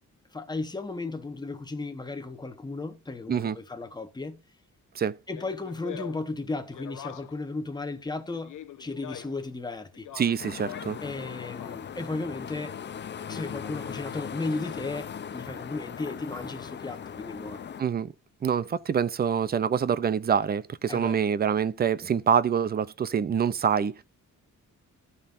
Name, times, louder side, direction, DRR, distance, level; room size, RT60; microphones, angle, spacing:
voice 1, 0.3-4.4 5.3-10.1 11.0-12.8 13.3-17.6 20.9-21.2, left 3 dB, 15° left, 1.0 m, -35 dB
Speech, 5.3-7.5 8.3-9.5 9.9-11.0 11.4-12.1, left 10 dB, 85° left, 1.0 m, -43 dB
voice 2, 10.2-11.0 17.8-18.1 18.4-23.9, right 7 dB, 30° right, 0.5 m, -25 dB
sound 1, 10.4-17.8, left 7 dB, 35° left, 0.5 m, -39 dB
14.0 x 5.5 x 2.5 m
wide cardioid pair, 155°, 30 cm